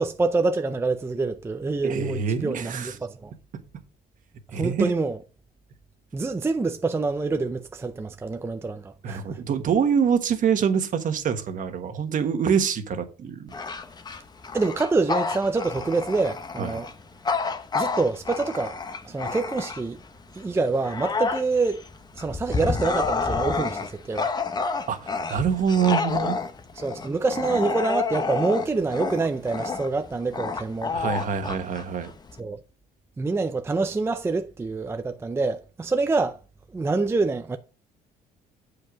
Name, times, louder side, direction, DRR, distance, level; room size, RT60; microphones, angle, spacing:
voice 1, 0.0-3.3 4.5-5.2 6.1-9.4 14.5-16.9 17.7-18.8 19.0-20.0 20.3-21.8 22.2-24.3 26.8-31.2 32.4-32.6 33.2-36.4 36.7-37.6, right 3 dB, 15° right, 0.5 m, -26 dB
voice 2, 1.8-2.9 4.5-4.9 9.0-13.5 16.6-16.8 24.9-26.4 30.9-32.1, right 7 dB, 50° right, 1.3 m, -25 dB
Bark / Growling, 13.5-20.0 20.5-32.4, left 4 dB, 25° left, 0.8 m, -29 dB
7.6 x 5.0 x 5.0 m
cardioid pair, 110°, 17 cm